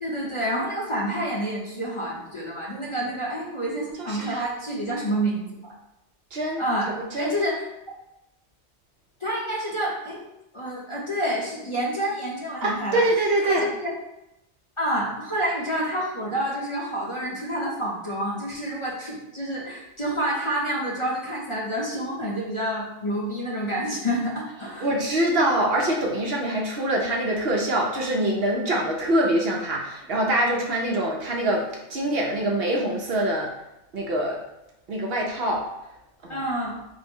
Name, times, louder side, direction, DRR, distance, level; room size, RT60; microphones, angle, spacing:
voice 1, 0.0-5.7 6.6-7.6 9.2-10.2 10.5-13.0 13.4-13.9 14.8-25.0 36.3-36.8, right 1 dB, 30° left, -5 dB, 0.8 m, -28 dB
voice 2, 4.0-4.4 6.3-7.4 12.6-13.7 24.8-33.5 33.9-34.4 34.9-35.7 36.2-36.4, right 1 dB, 60° right, -1 dB, 0.8 m, -24 dB
4.6 x 2.1 x 4.4 m, 0.89 s
omnidirectional pair, 1.2 m